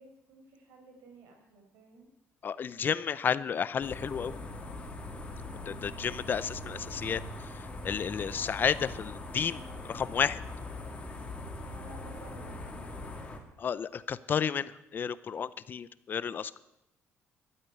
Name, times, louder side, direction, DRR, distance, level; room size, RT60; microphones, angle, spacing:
voice 1, 0.0-2.1 5.6-6.1 11.7-13.4, right 3 dB, 85° right, 2 dB, 4.8 m, -54 dB
voice 2, 2.4-4.3 5.7-10.4 13.6-16.6, left 7 dB, 40° left, 16 dB, 0.5 m, -32 dB
sound 1, 3.8-13.4, left 2 dB, 20° left, 2.3 m, -41 dB
12.5 x 8.6 x 9.2 m, 0.89 s
cardioid pair, 125°, 5 cm